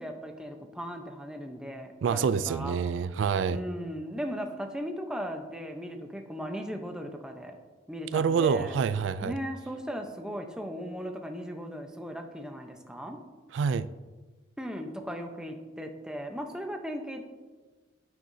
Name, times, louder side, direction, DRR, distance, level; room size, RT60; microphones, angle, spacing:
voice 1, 0.0-2.8 3.5-7.5 7.9-8.8 9.2-13.2 14.6-17.2, equal, 5° right, 4 dB, 0.7 m, -37 dB
voice 2, 2.0-3.6 8.1-9.3 13.5-13.9, right 6 dB, 85° right, 15 dB, 0.3 m, -27 dB
9.6 x 9.2 x 2.7 m, 1.3 s
head